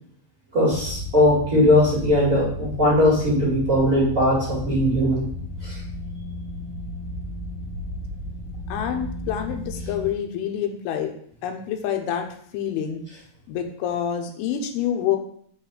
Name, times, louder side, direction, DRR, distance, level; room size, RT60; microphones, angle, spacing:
voice 1, 0.5-5.2 5.6-5.8, left 1 dB, 70° right, -8 dB, 0.7 m, -19 dB
sound 1, 0.7-10.1, left 1 dB, 45° right, 1.5 m, -34 dB
voice 2, 8.7-11.1 11.4-12.3 12.5-13.0 13.5-15.2, left 9 dB, 85° left, 4 dB, 3.3 m, -27 dB
7.6 x 3.2 x 5.3 m, 0.62 s
omnidirectional pair, 5.4 m